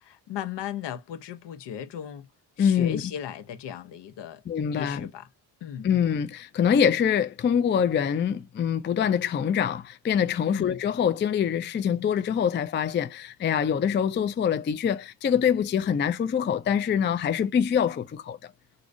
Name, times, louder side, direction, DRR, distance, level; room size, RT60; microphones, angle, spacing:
voice 1, 0.0-2.3 2.6-4.4 4.7-5.3 5.6-5.9 10.5-10.8, left 10 dB, 60° left, 0.7 m, -36 dB
voice 2, 2.6-3.0 4.5-5.1 5.8-18.4, left 8 dB, 25° left, 0.4 m, -24 dB
2.9 x 2.6 x 2.5 m
hypercardioid pair, 45°, 47 cm